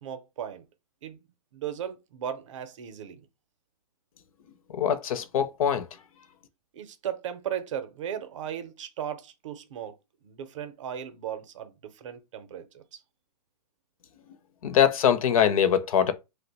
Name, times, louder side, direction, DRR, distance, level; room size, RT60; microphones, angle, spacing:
voice 1, 0.0-0.6 1.0-1.2 1.5-3.3 6.7-10.0 10.2-13.0, right 9 dB, 50° right, 0.6 m, -36 dB
voice 2, 4.7-5.8 14.6-16.1, left 9 dB, 55° left, 0.5 m, -23 dB
2.7 x 2.1 x 3.9 m
hypercardioid pair, 170°, 21 cm